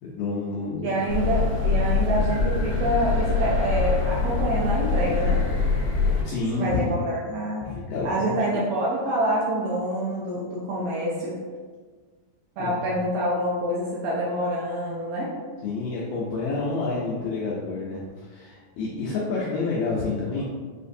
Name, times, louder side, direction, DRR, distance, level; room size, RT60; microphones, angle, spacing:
voice 1, 0.0-1.0 6.2-6.9 7.6-8.4 12.6-12.8 15.6-18.0 18.3-20.4, left 3 dB, 85° left, -5 dB, 1.9 m, -29 dB
voice 2, 0.8-5.4 6.5-7.6 8.0-11.3 12.6-15.3, right 1 dB, 80° right, -6 dB, 2.1 m, -26 dB
sound 1, 1.1-6.2, left 4 dB, 65° left, 1.3 m, -24 dB
7.1 x 2.6 x 2.6 m, 1.5 s
omnidirectional pair, 4.7 m